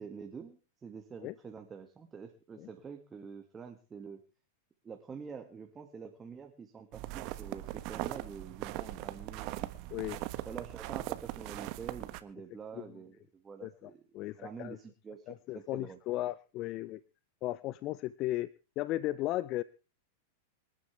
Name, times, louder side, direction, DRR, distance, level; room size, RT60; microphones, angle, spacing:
voice 1, 0.0-4.2 4.8-9.7 10.4-14.0 14.4-16.0, right 6 dB, 20° right, 4 dB, 2.2 m, -47 dB
sound 1, 6.9-12.2, right 17 dB, 50° right, 1.4 m, -40 dB
voice 2, 14.1-14.8 15.5-17.0 17.4-18.5 18.8-19.6, left 16 dB, 40° left, 19 dB, 0.6 m, -35 dB
26.5 x 11.5 x 3.5 m, 0.34 s
hypercardioid pair, 100°, 0 cm